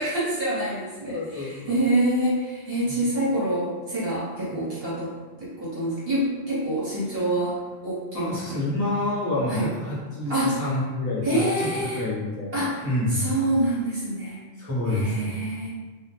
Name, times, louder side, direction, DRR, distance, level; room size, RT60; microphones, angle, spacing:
voice 1, 0.0-5.1 5.4-7.6 7.8-8.6 9.5-9.6 10.3-10.7 11.2-12.0 12.5-14.4 14.9-15.7, right 1 dB, 55° right, -9 dB, 1.0 m, -26 dB
voice 2, 1.1-1.8 2.9-3.0 4.5-4.6 8.1-13.3 14.6-15.3, left 2 dB, 20° left, -8 dB, 0.5 m, -28 dB
2.3 x 2.0 x 2.8 m, 1.4 s
omnidirectional pair, 1.2 m